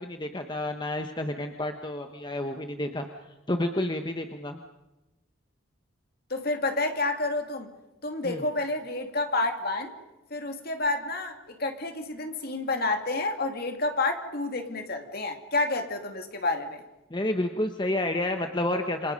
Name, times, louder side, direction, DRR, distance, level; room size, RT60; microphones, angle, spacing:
voice 1, 0.0-3.1 3.5-4.6 8.2-8.4 17.1-19.1, left 1 dB, 20° left, 6 dB, 1.0 m, -30 dB
voice 2, 6.3-7.7 8.0-9.9 10.3-16.8, left 2 dB, 45° left, 5 dB, 2.4 m, -29 dB
28.0 x 27.0 x 5.3 m, 1.0 s
head